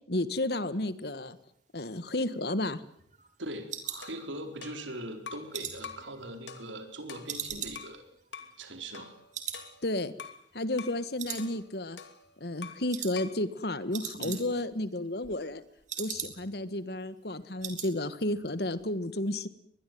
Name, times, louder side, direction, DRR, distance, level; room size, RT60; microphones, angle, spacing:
voice 1, 0.1-1.4 1.7-2.8 9.8-10.1 10.5-12.0 12.4-15.6 16.0-19.5, left 1 dB, 60° left, 14 dB, 1.6 m, -32 dB
sound 1, 2.0-4.8 5.1-6.9 7.3-9.1 9.3-9.7 10.0-10.1 10.5-10.9 11.2-12.0 12.3-12.5 12.9-13.2 13.5-13.6 13.8-14.7 15.0-16.6 17.0-17.1 17.3-17.9 18.2-18.5 18.8-18.9, right 8 dB, 40° right, 3.9 m, -41 dB
voice 2, 3.4-8.1 8.6-9.1 14.2-14.5, right 1 dB, 90° right, 7 dB, 4.3 m, -41 dB
sound 2, 4.0-5.5 5.8-6.1 6.5-8.0 8.3-8.6 8.9-10.4 10.8-11.0 11.4-12.9 13.2-13.4, left 6 dB, 80° left, 2.7 m, -46 dB
23.5 x 21.0 x 9.4 m, 0.70 s
head